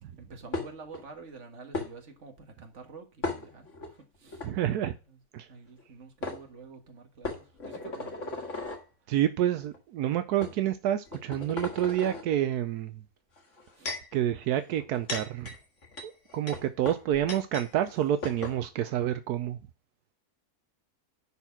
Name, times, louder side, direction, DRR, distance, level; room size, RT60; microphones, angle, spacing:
voice 1, 0.0-4.5 5.1-5.2 5.5-8.5 13.8-14.0, right 4 dB, 50° right, 1.9 m, -48 dB
sound 1, 0.5-1.0 1.7-1.9 3.2-3.9 4.3-4.5 5.8-5.9 6.2-6.4 7.2-8.8 9.6-9.8 10.4-10.5 11.1-12.2 13.4-14.1 14.8-17.7 17.9-18.0 18.2-18.6, left 2 dB, 50° left, 2.0 m, -36 dB
voice 2, 4.4-4.9 5.3-5.5 9.1-13.0 14.1-15.6 16.0-19.6, right 11 dB, 85° right, 1.2 m, -28 dB
11.0 x 4.3 x 5.9 m
omnidirectional pair, 1.6 m